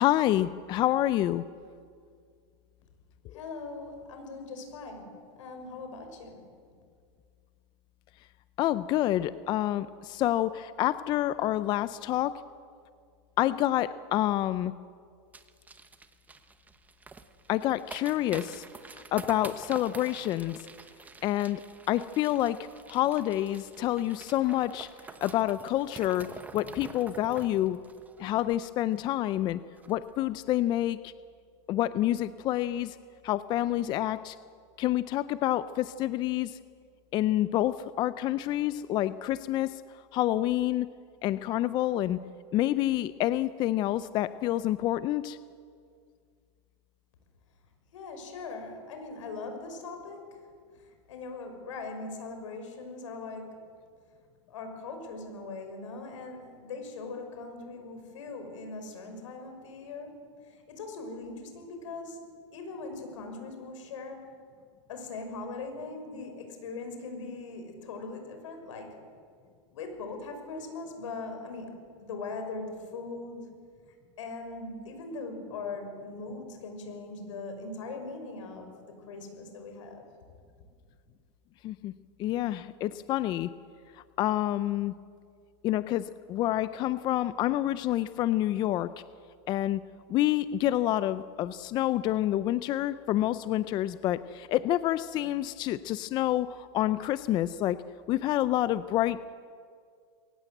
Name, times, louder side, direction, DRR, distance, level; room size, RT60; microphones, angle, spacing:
voice 1, 0.0-1.4 3.3-3.4 8.6-12.4 13.4-14.7 17.5-18.6 19.1-20.7 21.2-21.6 21.9-22.6 22.9-24.9 25.2-26.3 26.5-27.8 28.2-29.6 29.9-31.1 31.7-33.0 33.2-34.4 34.8-36.6 37.1-39.8 40.1-40.9 41.2-42.2 42.5-45.4 81.6-81.9 82.2-83.5 84.2-84.9 85.6-88.9 89.5-89.8 90.1-97.8 98.1-99.2, left 14 dB, 30° left, 15 dB, 0.5 m, -28 dB
voice 2, 3.3-6.4 47.9-50.2 51.1-53.5 54.5-60.1 60.7-62.2 62.5-64.2 64.9-68.9 69.7-73.5 74.2-78.8 79.1-80.0, left 3 dB, 75° left, 5 dB, 5.8 m, -40 dB
sound 1, 15.3-29.1 29.4-29.5 29.8-30.1 30.5-30.6, right 4 dB, 10° right, 1.0 m, -48 dB
22.5 x 18.5 x 7.9 m, 2.1 s
supercardioid pair, 145°, 16 cm